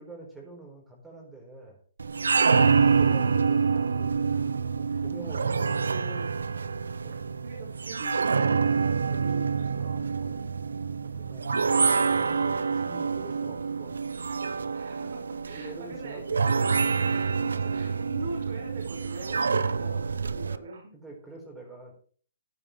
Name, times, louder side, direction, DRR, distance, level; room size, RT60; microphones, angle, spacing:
voice 1, 0.0-1.8 2.5-6.1 11.0-11.7 12.1-13.9 15.5-16.8 20.9-21.9, right 2 dB, 10° right, -2 dB, 4.5 m, -46 dB
sound 1, 2.0-20.6, right 5 dB, 85° right, 0.7 m, -26 dB
voice 2, 5.8-6.3 7.4-9.5 9.8-10.4 14.7-16.2 17.0-20.9, right 2 dB, 65° right, 1 dB, 5.8 m, -42 dB
15.5 x 9.8 x 3.4 m, 0.43 s
hypercardioid pair, 135°, 0 cm